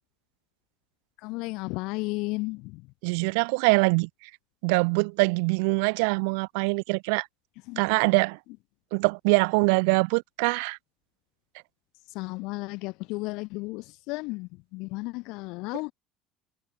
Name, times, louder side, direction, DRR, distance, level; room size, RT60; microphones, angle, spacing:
voice 1, 1.2-2.8 7.7-7.8 12.1-15.9, left 24 dB, 60° left, 1.7 m, -33 dB
voice 2, 3.0-4.1 4.6-7.3 7.8-8.4 8.9-10.8, right 35 dB, 80° right, 0.3 m, -23 dB
cardioid pair, 170°, 0 cm